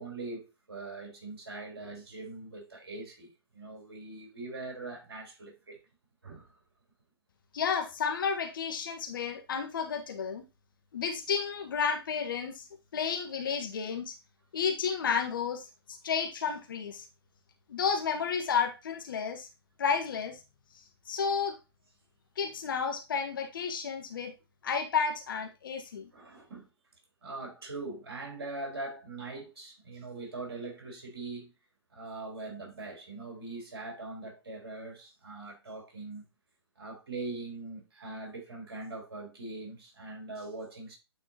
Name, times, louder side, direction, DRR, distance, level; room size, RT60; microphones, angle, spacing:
voice 1, 0.0-5.8 6.2-6.6 26.1-26.7 27.2-31.5 31.9-36.2 36.8-41.0, right 3 dB, 65° right, 3.9 m, -42 dB
voice 2, 7.5-10.4 10.9-12.7 12.9-14.2 14.5-15.7 16.0-17.0 17.7-19.5 19.8-20.4 21.1-21.6 22.4-24.3 24.6-26.1, left 6 dB, 55° left, 1.3 m, -31 dB
9.0 x 4.3 x 2.8 m
figure-of-eight pair, 125°, 13 cm